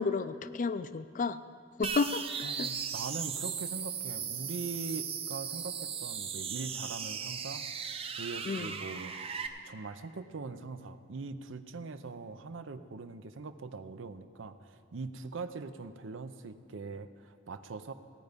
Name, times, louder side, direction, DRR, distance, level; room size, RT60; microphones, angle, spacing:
voice 1, 0.0-1.4 1.8-2.2 2.6-2.7 8.5-8.7, left 4 dB, 45° left, 14 dB, 0.4 m, -31 dB
sound 1, 1.8-9.5, right 7 dB, 30° right, 0.6 m, -37 dB
voice 2, 2.4-7.7 8.2-9.2 9.6-17.9, right 4 dB, 85° right, 11 dB, 0.6 m, -42 dB
16.5 x 9.4 x 5.2 m, 2.2 s
head